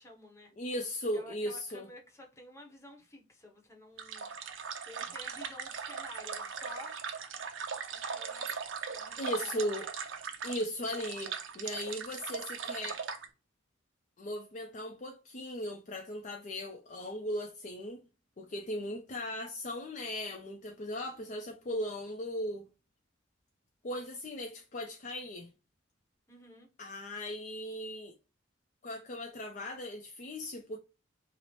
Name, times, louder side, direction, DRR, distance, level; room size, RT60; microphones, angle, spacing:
voice 1, 0.0-0.5 1.1-7.0 7.9-8.5 8.9-9.5 26.3-26.7, left 1 dB, 15° left, 0.8 m, -51 dB
voice 2, 0.6-1.9 9.2-9.9 10.4-13.0 14.2-18.0 18.4-22.7 23.8-25.5 26.8-28.1 28.8-30.8, left 1 dB, 40° left, 0.4 m, -37 dB
sound 1, 4.0-13.3, right 6 dB, 70° right, 0.5 m, -39 dB
3.0 x 2.0 x 4.1 m
head